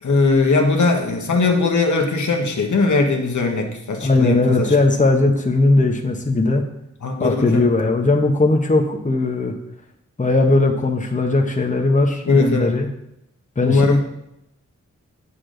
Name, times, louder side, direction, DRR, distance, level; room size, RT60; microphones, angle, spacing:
voice 1, 0.0-4.7 7.0-7.7 12.3-12.8 13.6-14.0, left 3 dB, 75° left, 2 dB, 1.3 m, -19 dB
voice 2, 4.0-6.6 7.2-9.5 10.2-12.9 13.6-13.8, left 2 dB, 25° left, 3 dB, 1.0 m, -18 dB
8.4 x 6.9 x 3.9 m, 0.81 s
wide cardioid pair, 75°, 30 cm